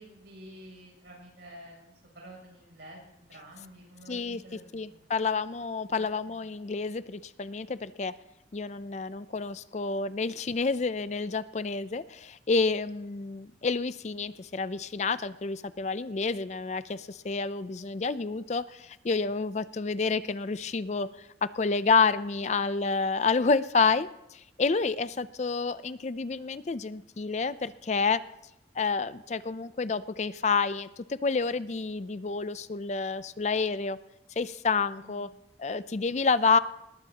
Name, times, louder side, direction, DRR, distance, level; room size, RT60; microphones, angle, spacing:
voice 1, 0.0-5.0 5.9-6.4 22.4-22.6 35.0-35.3, right 1 dB, 70° right, -2 dB, 7.6 m, -50 dB
voice 2, 4.1-4.4 4.7-8.1 8.5-28.2 28.8-34.0 34.4-35.3 35.6-36.6, left 4 dB, 40° left, 15 dB, 0.4 m, -29 dB
20.0 x 19.5 x 2.9 m, 0.87 s
head